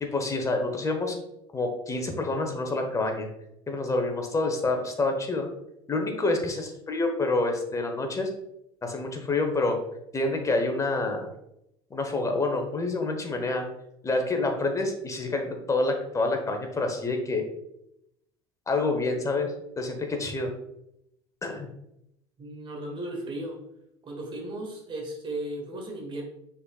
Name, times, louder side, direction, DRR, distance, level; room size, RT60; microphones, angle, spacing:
voice 1, 0.0-1.2 1.5-3.3 3.7-5.5 5.9-8.3 8.8-9.8 10.1-11.3 11.9-13.6 14.0-17.4 18.7-20.5 21.4-21.7, left 2 dB, 20° left, 4 dB, 1.0 m, -27 dB
voice 2, 22.4-23.6 24.0-26.2, right 1 dB, 35° right, 1 dB, 1.4 m, -35 dB
5.4 x 4.0 x 2.3 m, 0.81 s
hypercardioid pair, 75°, 14 cm